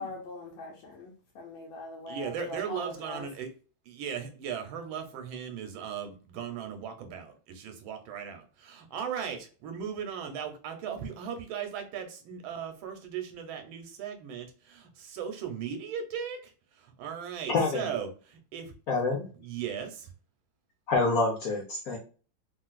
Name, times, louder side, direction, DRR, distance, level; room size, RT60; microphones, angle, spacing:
voice 1, 0.0-3.3, left 2 dB, 80° left, -3 dB, 1.5 m, -41 dB
voice 2, 2.1-3.5 3.9-16.4 16.8-18.7 19.4-20.1, right 7 dB, 90° right, 6 dB, 1.4 m, -37 dB
voice 3, 17.5-17.8 18.9-19.3 20.9-22.0, left 3 dB, 65° left, 0 dB, 0.9 m, -27 dB
3.4 x 2.5 x 2.2 m, 0.37 s
omnidirectional pair, 2.2 m